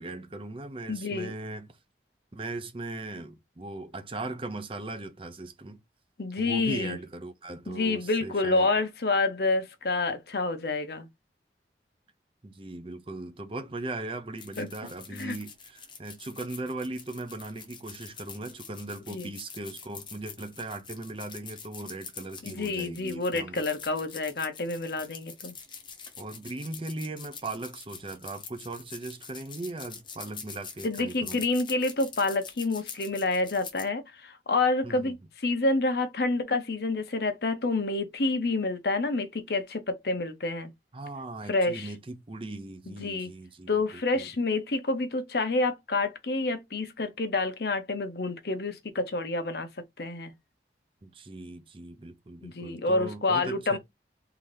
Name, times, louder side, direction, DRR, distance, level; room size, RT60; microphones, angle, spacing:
voice 1, 0.0-1.7 2.3-5.8 6.4-8.7 12.4-23.6 26.2-31.4 34.8-35.1 40.9-44.3 51.0-53.8, right 2 dB, 30° right, 0.5 m, -38 dB
voice 2, 0.9-1.3 6.2-7.0 7.7-11.1 14.6-14.7 15.2-15.3 19.1-19.3 22.4-25.5 30.8-40.7 41.5-41.9 43.0-43.3 43.7-49.7 50.0-50.3 52.4-53.8, left 3 dB, 60° left, 0.8 m, -28 dB
sound 1, 14.4-33.9, left 6 dB, 25° left, 0.8 m, -45 dB
3.8 x 2.7 x 3.2 m
head